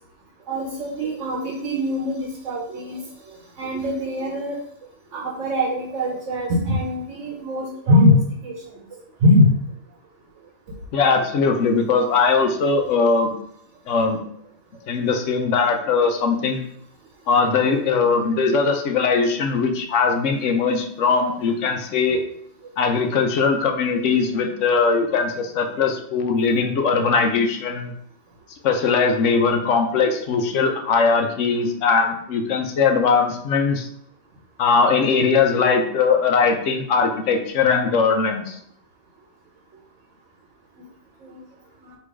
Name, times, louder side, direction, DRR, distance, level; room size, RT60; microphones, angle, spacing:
voice 1, 0.5-3.0 3.6-4.6 5.1-8.2 8.4-8.5 9.2-9.5 41.2-41.4, left 1 dB, 90° right, -2 dB, 1.2 m, -21 dB
voice 2, 10.9-13.3 13.9-14.2 14.9-16.6 17.3-22.2 22.8-27.9 28.6-33.9 34.6-38.5, left 5 dB, 85° left, 4 dB, 1.0 m, -20 dB
3.3 x 3.0 x 4.7 m, 0.67 s
omnidirectional pair, 1.2 m